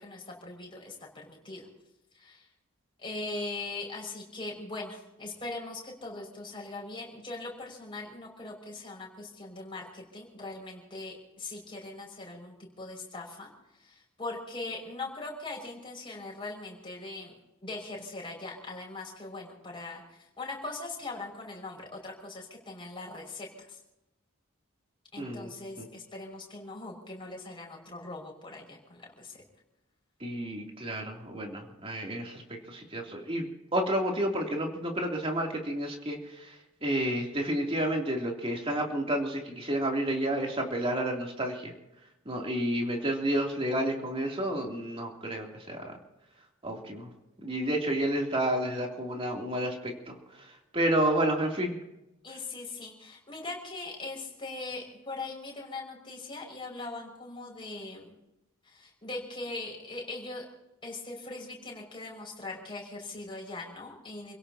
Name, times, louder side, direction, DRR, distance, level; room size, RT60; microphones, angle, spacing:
voice 1, 0.0-1.7 2.1-2.5 3.0-17.3 17.6-23.8 25.1-29.4 52.2-58.1 58.6-60.5 60.8-64.4, left 2 dB, 25° left, -1 dB, 5.8 m, -41 dB
voice 2, 25.2-25.5 30.2-33.5 33.7-36.5 36.8-41.7 42.2-45.9 46.6-47.1 47.4-50.2 50.7-51.8, right 1 dB, 25° right, 0 dB, 3.0 m, -30 dB
29.5 x 17.0 x 2.9 m, 0.94 s
head